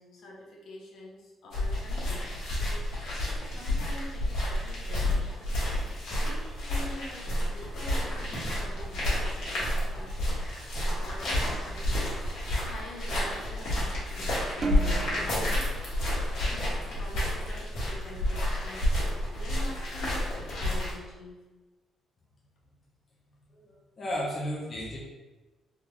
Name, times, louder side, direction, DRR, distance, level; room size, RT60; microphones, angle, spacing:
voice 1, 0.0-5.1 6.0-10.2 10.7-14.3 15.0-15.8 16.4-21.4, left 1 dB, 55° left, -2 dB, 0.7 m, -46 dB
sound 1, 1.5-20.9, left 1 dB, 85° left, 1.4 m, -30 dB
sound 2, 14.6-17.2, right 4 dB, 35° right, 0.4 m, -36 dB
voice 2, 23.5-25.0, equal, 25° left, -5 dB, 0.5 m, -34 dB
3.6 x 2.3 x 3.0 m, 1.2 s
cardioid pair, 180°, 0 cm